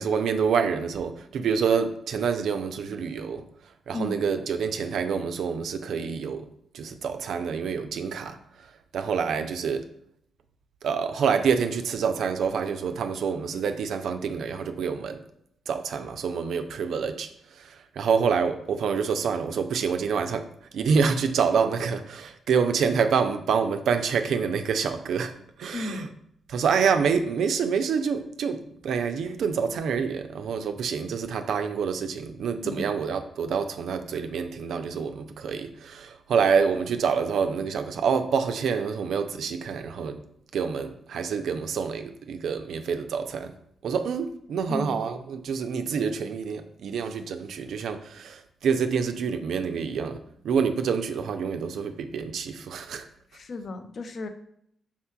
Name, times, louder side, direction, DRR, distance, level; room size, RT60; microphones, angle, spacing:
voice 1, 0.0-3.5 3.9-6.5 6.7-8.4 8.9-9.9 10.8-15.2 15.7-17.3 17.6-20.5 20.7-25.3 25.6-26.1 26.5-40.2 40.5-43.5 43.8-53.0, right 6 dB, 70° right, 0.3 m, -27 dB
voice 2, 25.7-26.1 32.6-32.9 44.7-44.9 53.3-54.3, left 2 dB, 55° left, 0.5 m, -34 dB
4.4 x 3.6 x 2.2 m
hypercardioid pair, 40°, 0 cm